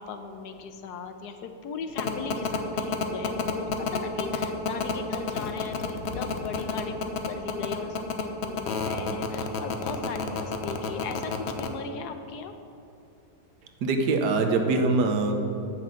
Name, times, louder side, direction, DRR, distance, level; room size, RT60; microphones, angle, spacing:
voice 1, 0.0-12.5, left 5 dB, 75° left, 8 dB, 1.3 m, -38 dB
sound 1, 2.0-11.7, left 5 dB, 50° left, 0.9 m, -29 dB
voice 2, 13.8-15.4, right 3 dB, 90° right, 5 dB, 1.6 m, -23 dB
9.6 x 6.0 x 7.6 m, 2.6 s
omnidirectional pair, 1.7 m